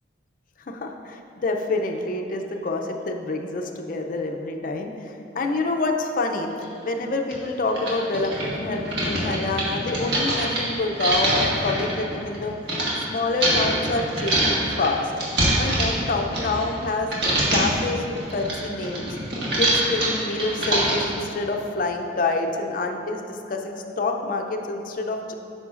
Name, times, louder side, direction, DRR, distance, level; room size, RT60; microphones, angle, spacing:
voice 1, 0.7-6.5 6.8-12.5 13.1-15.1 15.6-17.1 17.5-19.2 19.6-25.3, left 2 dB, 50° left, 3 dB, 0.5 m, -27 dB
sound 1, 6.6-6.7 7.3-7.4 7.7-12.9 13.4-16.8 17.1-17.8 18.2-21.2, right 1 dB, 85° right, 1.5 m, -24 dB
8.8 x 5.6 x 2.5 m, 3.0 s
head